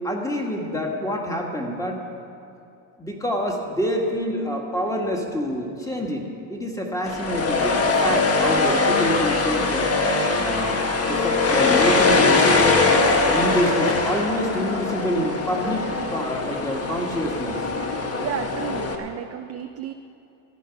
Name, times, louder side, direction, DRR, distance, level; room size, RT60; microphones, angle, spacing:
voice 1, 0.0-2.0 3.0-10.0 10.4-10.8 11.1-12.8 13.2-17.6, equal, 5° left, 1 dB, 1.7 m, -27 dB
sound 1, 7.1-19.0, left 3 dB, 30° left, 1.4 m, -22 dB
voice 2, 18.2-19.9, right 10 dB, 35° right, 7 dB, 0.4 m, -32 dB
15.0 x 10.5 x 5.9 m, 2.7 s
cardioid pair, 130°, 48 cm